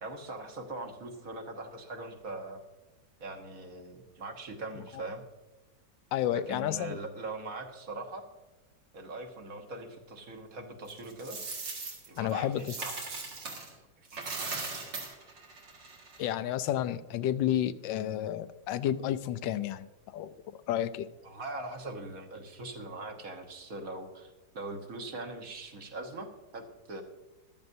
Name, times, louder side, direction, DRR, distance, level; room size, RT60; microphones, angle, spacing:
voice 1, 0.0-2.6 3.2-5.2 6.3-8.3 8.9-11.4 12.1-13.0 14.4-14.8 21.2-26.3 26.5-27.0, right 2 dB, 50° right, 3 dB, 1.5 m, -41 dB
voice 2, 6.1-7.0 12.2-12.7 16.2-19.9 20.1-20.4 20.7-21.1, left 11 dB, 85° left, 13 dB, 1.3 m, -31 dB
Coin (dropping), 10.9-13.7 14.1-16.3, right 4 dB, 80° right, 2.6 m, -39 dB
14.5 x 12.0 x 2.7 m, 1.1 s
omnidirectional pair, 1.9 m